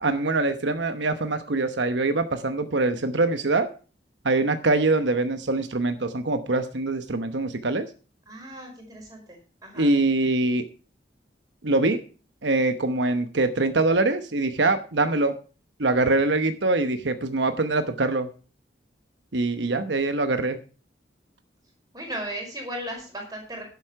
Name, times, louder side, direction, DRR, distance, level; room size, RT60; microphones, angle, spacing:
voice 1, 0.0-3.7 4.2-7.8 9.8-10.6 11.6-12.0 12.4-15.3 15.8-18.3 19.3-20.6, right 2 dB, 80° right, 9 dB, 1.0 m, -23 dB
voice 2, 8.3-9.9 21.9-23.6, right 1 dB, 20° right, 0 dB, 5.0 m, -36 dB
11.0 x 8.3 x 5.8 m, 0.36 s
head